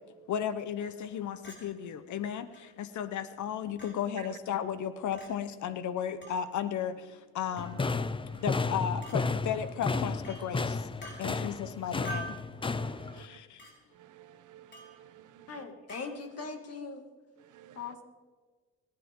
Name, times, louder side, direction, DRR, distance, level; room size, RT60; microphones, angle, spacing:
voice 1, 0.3-7.8 8.4-10.9 11.2-12.4 13.1-13.6, left 9 dB, 70° left, 12 dB, 1.0 m, -34 dB
Chink clink, 1.4-1.6 2.5-2.6 3.8-3.9 5.1-5.3 6.2-6.4 7.6-7.8 9.0-9.2 10.2-10.4 11.0-11.2 12.0-12.4 13.6-13.7 14.7-14.9 15.9-16.1, right 1 dB, 40° left, 4.8 m, -43 dB
sound 1, 7.6-13.3, left 3 dB, 15° left, 0.6 m, -33 dB
voice 2, 8.2-8.6 11.1-11.4 12.5-13.4 13.9-15.6 16.3-16.4 17.4-17.9, right 11 dB, 80° right, 11 dB, 1.2 m, -53 dB
voice 3, 15.5-17.1 17.8-18.0, left 4 dB, 55° left, 5 dB, 2.4 m, -40 dB
28.5 x 10.0 x 3.8 m, 1.5 s
cardioid pair, 90°, 30 cm